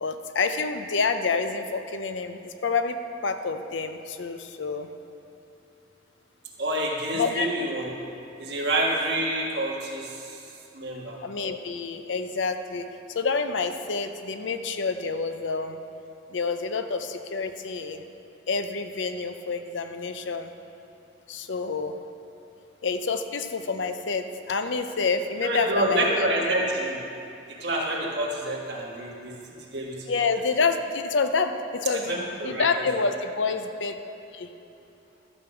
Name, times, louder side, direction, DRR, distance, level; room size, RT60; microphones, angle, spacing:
voice 1, 0.0-3.0 3.2-4.9 7.1-7.5 11.2-12.9 13.1-15.8 16.3-18.1 18.5-20.5 21.3-22.0 22.8-26.3 30.1-32.2 32.4-34.0 34.3-34.5, left 4 dB, 75° left, 8 dB, 0.6 m, -28 dB
voice 2, 6.6-7.9 8.4-10.2 10.7-11.2 25.4-27.0 27.6-29.3 29.7-30.1 31.9-32.8, right 1 dB, 60° right, -3 dB, 1.7 m, -27 dB
12.0 x 5.4 x 7.0 m, 2.8 s
head